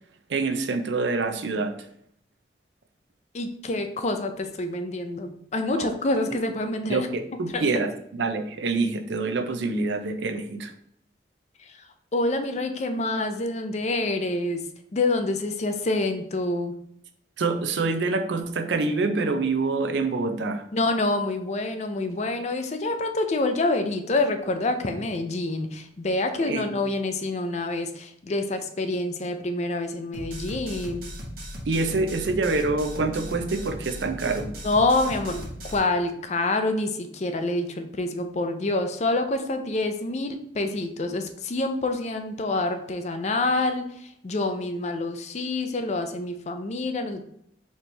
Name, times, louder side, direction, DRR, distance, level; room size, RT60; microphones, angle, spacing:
voice 1, 0.3-1.7 5.7-5.9 6.9-10.7 17.4-20.6 26.4-26.7 31.7-34.5, right 3 dB, 80° right, 7 dB, 0.5 m, -26 dB
voice 2, 3.3-7.1 7.5-7.7 11.6-11.8 12.1-14.6 14.9-16.7 20.7-31.1 34.6-47.2, left 2 dB, 40° left, 7 dB, 0.5 m, -27 dB
sound 1, 30.1-35.8, equal, 55° right, 1.2 m, -37 dB
4.3 x 3.0 x 3.2 m, 0.70 s
head